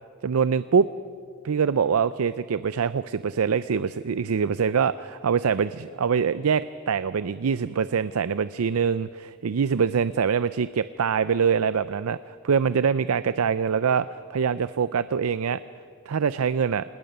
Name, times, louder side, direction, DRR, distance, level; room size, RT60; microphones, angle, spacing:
voice 1, 0.2-0.9 1.4-15.6 16.1-16.8, right 6 dB, 90° right, 15 dB, 0.5 m, -24 dB
27.5 x 19.5 x 6.7 m, 2.3 s
head